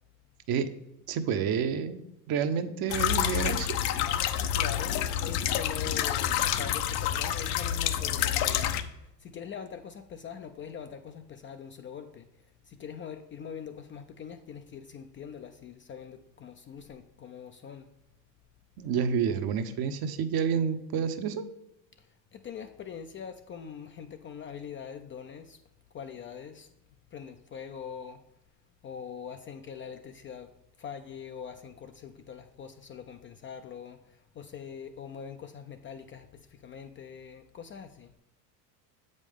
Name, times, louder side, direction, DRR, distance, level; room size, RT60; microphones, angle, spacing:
voice 1, 1.1-2.0 2.3-3.7 18.8-21.5, right 7 dB, 45° right, 9 dB, 0.8 m, -29 dB
sound 1, 2.9-8.8, left 10 dB, 65° left, 0.8 m, -28 dB
voice 2, 4.3-12.3 12.6-17.9 22.0-25.6 25.9-26.7 27.1-28.2 28.8-30.5 30.8-38.1, left 7 dB, 25° left, 7 dB, 0.4 m, -43 dB
7.4 x 5.2 x 3.6 m, 0.88 s
hypercardioid pair, 85°, 50 cm